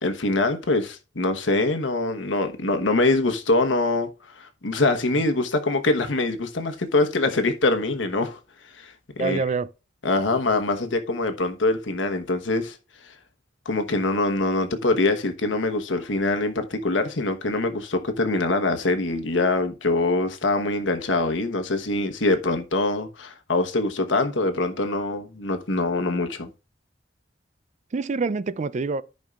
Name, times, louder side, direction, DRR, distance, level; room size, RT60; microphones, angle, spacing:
voice 1, 0.0-4.1 4.4-8.4 8.7-9.4 10.0-12.8 13.0-13.1 13.6-26.5, left 2 dB, 85° left, 1.2 m, -24 dB
voice 2, 9.2-9.7 27.9-29.0, right 4 dB, 40° right, 0.4 m, -26 dB
14.0 x 5.4 x 2.4 m
head